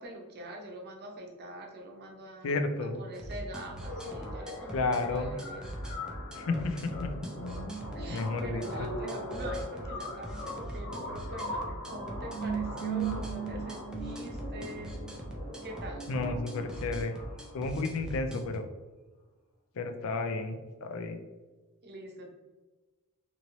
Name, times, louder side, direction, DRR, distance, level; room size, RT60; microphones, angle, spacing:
voice 1, 0.0-2.6 3.0-5.6 7.9-15.0 15.6-16.1 21.8-22.3, right 1 dB, 45° right, 0 dB, 0.7 m, -44 dB
voice 2, 2.4-3.0 4.7-5.3 6.3-7.1 8.1-8.9 16.1-17.1 17.5-18.6 19.8-21.2, left 3 dB, 65° left, 7 dB, 0.4 m, -32 dB
sound 1, 3.1-18.6, right 1 dB, 5° right, 0.4 m, -41 dB
sound 2, 3.8-17.8, right 2 dB, 80° left, 1.1 m, -39 dB
3.0 x 2.9 x 2.6 m, 1.2 s
head